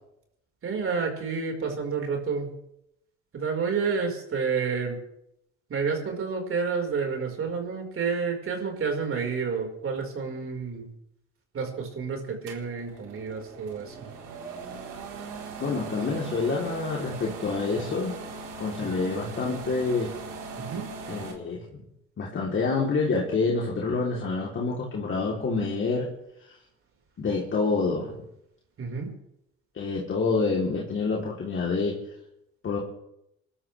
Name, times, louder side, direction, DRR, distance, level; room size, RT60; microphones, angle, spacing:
voice 1, 0.6-2.5 3.3-5.0 5.7-10.9 11.5-14.1 20.7-20.8 28.8-29.1, right 5 dB, 40° right, 2 dB, 5.0 m, -29 dB
sound 1, 12.5-21.3, right 4 dB, 70° right, 4.2 m, -40 dB
voice 2, 15.6-18.1 18.6-20.1 21.1-21.6 22.2-26.1 26.5-26.6 27.2-28.1 29.8-32.0 32.6-32.8, left 4 dB, 40° left, -3 dB, 3.5 m, -27 dB
28.5 x 13.0 x 3.5 m, 0.80 s
hypercardioid pair, 65°, 32 cm